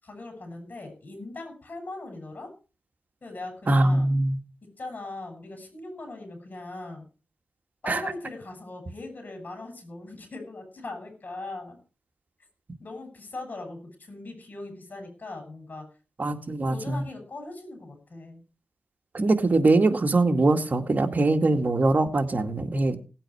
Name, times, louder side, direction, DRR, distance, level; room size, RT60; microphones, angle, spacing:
voice 1, 0.0-2.5 3.2-4.1 4.8-7.1 7.8-11.8 12.8-15.8 16.7-18.4, left 2 dB, 50° left, 4 dB, 7.0 m, -40 dB
voice 2, 3.7-4.4 7.9-8.0 16.2-17.0 19.1-23.0, right 2 dB, 50° right, 6 dB, 2.0 m, -22 dB
17.0 x 8.8 x 4.8 m, 0.35 s
cardioid pair, 60°, 4 cm